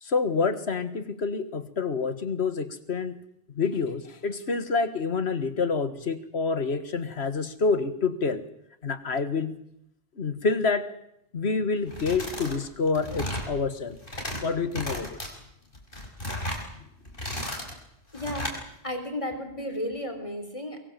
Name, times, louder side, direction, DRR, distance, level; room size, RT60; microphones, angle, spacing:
voice 1, 0.0-3.2 3.5-8.4 8.8-9.6 10.2-10.9 11.3-14.0 14.4-15.2 16.7-16.8, left 4 dB, 85° left, 12 dB, 1.9 m, -27 dB
sound 1, 11.9-12.6 12.9-13.5 13.9-14.4 14.7-15.3 15.7-16.6 17.0-17.7 18.1-18.6, left 1 dB, 55° left, 5.1 m, -34 dB
voice 2, 18.1-18.6 18.8-20.8, left 1 dB, 30° left, 6 dB, 3.9 m, -33 dB
23.5 x 22.0 x 7.5 m, 0.77 s
omnidirectional pair, 1.0 m